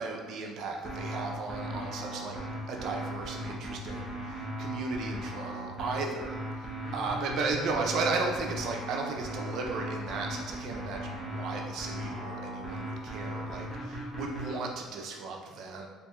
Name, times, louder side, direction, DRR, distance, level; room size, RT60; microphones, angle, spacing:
voice 1, 0.0-2.4 2.7-15.9, right 3 dB, 60° right, 1 dB, 0.4 m, -35 dB
sound 1, 0.8-14.6, equal, 20° left, 0.8 m, -38 dB
4.2 x 2.5 x 2.3 m, 1.4 s
cardioid pair, 125°, 0 cm